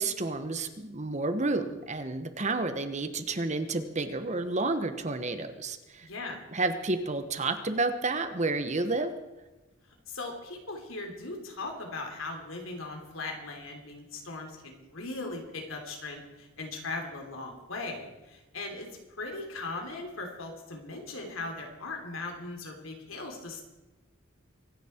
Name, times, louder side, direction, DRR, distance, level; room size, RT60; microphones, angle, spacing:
voice 1, 0.0-6.1 6.5-9.1, right 3 dB, 35° right, 9 dB, 1.1 m, -30 dB
voice 2, 6.0-6.4 10.1-18.9 19.2-23.6, left 3 dB, 85° left, 2 dB, 3.3 m, -39 dB
24.5 x 10.0 x 4.5 m, 1.1 s
head